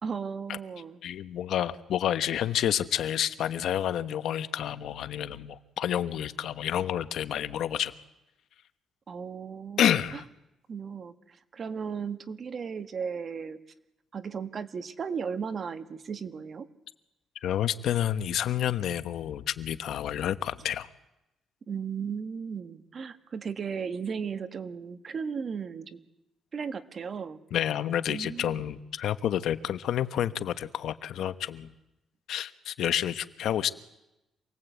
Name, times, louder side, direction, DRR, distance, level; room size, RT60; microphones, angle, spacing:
voice 1, 0.0-1.0 9.1-10.0 10.7-13.6 14.1-16.7 21.7-26.0 26.5-27.4 28.1-28.6, right 6 dB, 45° right, 9 dB, 1.6 m, -35 dB
voice 2, 1.0-7.9 9.8-10.2 17.4-20.9 27.5-31.7 32.3-33.7, left 10 dB, 75° left, 11 dB, 1.1 m, -29 dB
27.5 x 20.5 x 8.3 m, 0.93 s
cardioid pair, 90°, 0 cm